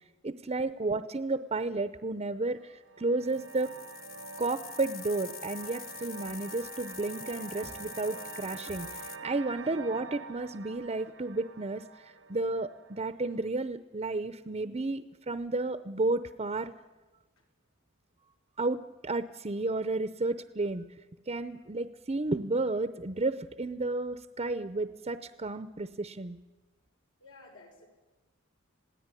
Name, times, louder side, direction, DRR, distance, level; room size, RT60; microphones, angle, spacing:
voice 1, 0.2-3.7 4.4-16.7 18.6-20.8 21.3-26.4, right 2 dB, 30° right, 12 dB, 0.7 m, -32 dB
sound 1, 2.4-13.5, right 5 dB, 65° right, 0.8 m, -46 dB
sound 2, 3.2-9.2, left 9 dB, 45° left, 1.2 m, -46 dB
voice 2, 27.2-27.9, left 2 dB, 80° left, 2 dB, 6.3 m, -54 dB
27.0 x 17.5 x 9.8 m, 1.2 s
head